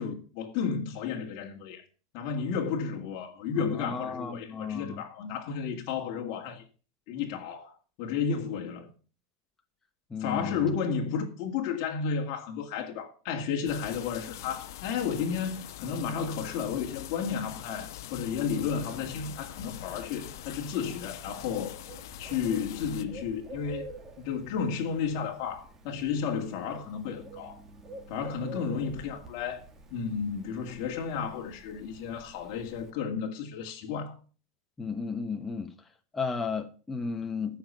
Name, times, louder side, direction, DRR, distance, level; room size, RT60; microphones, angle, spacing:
voice 1, 0.0-1.8 2.1-6.6 7.1-8.9 10.2-21.8 22.2-27.6 28.1-29.7 29.9-34.2, left 6 dB, 45° left, 2.1 m, -32 dB
voice 2, 3.6-5.0 10.1-10.7 34.8-35.7 36.1-37.6, left 5 dB, 10° left, 1.0 m, -34 dB
sound 1, 13.7-23.0, left 12 dB, 70° left, 0.9 m, -43 dB
Bird, 18.9-32.9, right 1 dB, 15° right, 2.2 m, -49 dB
14.0 x 6.0 x 6.8 m
supercardioid pair, 155°, 2 cm